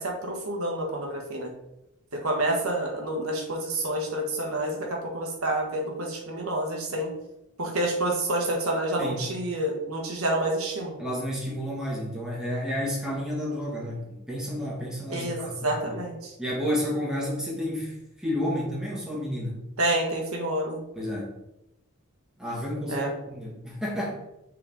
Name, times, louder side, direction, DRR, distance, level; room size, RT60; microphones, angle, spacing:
voice 1, 0.0-1.5 2.1-7.1 7.6-11.0 15.1-16.3 19.8-20.8 22.9-23.1, right 1 dB, 80° right, 1 dB, 1.5 m, -28 dB
voice 2, 11.0-16.0 16.4-19.5 20.9-21.3 22.4-24.1, equal, 5° right, -5 dB, 1.8 m, -31 dB
6.5 x 4.0 x 3.7 m, 0.87 s
head